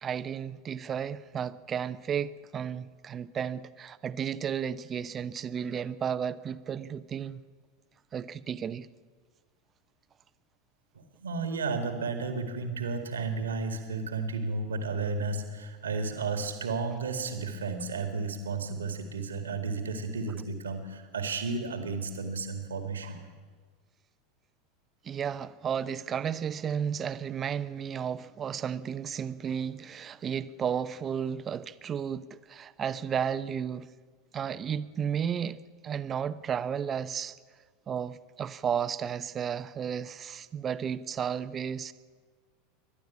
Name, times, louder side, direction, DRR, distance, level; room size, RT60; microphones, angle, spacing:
voice 1, 0.0-7.4 8.1-8.9 25.0-33.9 34.3-35.6 35.8-37.4 37.9-41.9, right 8 dB, 30° right, 0.9 m, -33 dB
voice 2, 10.9-23.2, right 4 dB, 80° right, 2.0 m, -33 dB
29.0 x 12.0 x 8.6 m
figure-of-eight pair, 80°, 0 cm